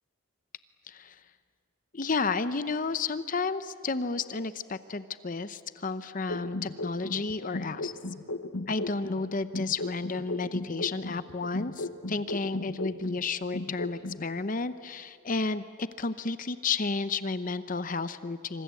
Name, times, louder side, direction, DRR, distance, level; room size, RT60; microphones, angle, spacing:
voice 1, 0.9-1.2 1.9-7.9 8.7-18.6, left 4 dB, 40° left, 12 dB, 0.7 m, -32 dB
sound 1, 6.3-9.2 9.5-13.2 13.5-14.2, left 2 dB, 80° left, 1.1 m, -35 dB
26.5 x 26.5 x 8.3 m, 2.2 s
head